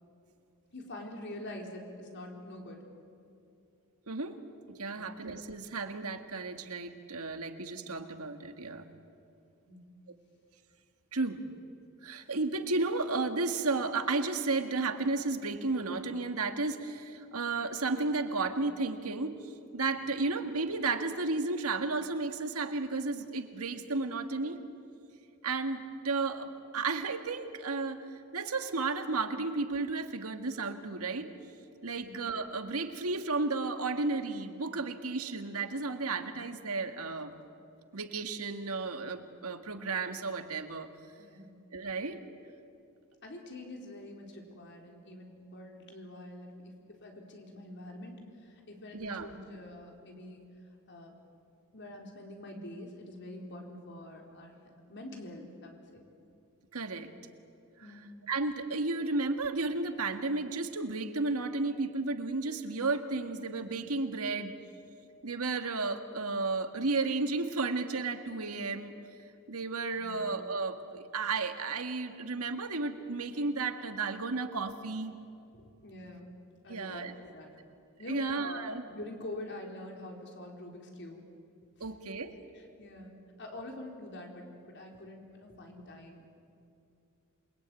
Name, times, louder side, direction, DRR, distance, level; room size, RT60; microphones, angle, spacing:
voice 1, 0.7-2.8 4.9-5.1 9.7-9.8 32.0-32.1 41.2-41.6 43.2-50.4 50.9-51.1 51.7-54.5 54.9-56.1 57.8-58.1 70.0-70.2 75.6-76.3 76.6-77.5 78.0-78.6 78.9-81.2 82.5-83.1 83.4-86.2, left 1 dB, 55° left, 1 dB, 4.1 m, -45 dB
voice 2, 4.1-4.4 4.8-8.8 10.1-10.2 11.1-11.4 12.0-24.6 25.4-28.1 28.3-31.3 31.8-37.3 37.9-40.9 41.7-42.2 48.9-49.3 56.7-57.1 58.3-64.5 65.2-68.9 69.5-75.1 76.7-77.1 78.1-78.8 81.8-82.3, right 3 dB, 85° right, 7 dB, 1.9 m, -33 dB
28.0 x 22.0 x 9.1 m, 2.6 s
head